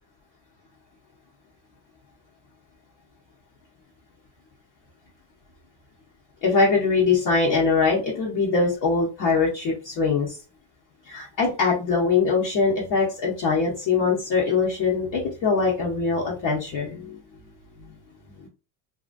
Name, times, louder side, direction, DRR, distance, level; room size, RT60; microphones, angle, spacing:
voice 1, 6.4-10.4 11.1-17.2 17.8-17.9 18.4-18.5, left 4 dB, 45° left, -4 dB, 0.8 m, -22 dB
2.8 x 2.5 x 2.5 m, 0.32 s
cardioid pair, 155°, 45 cm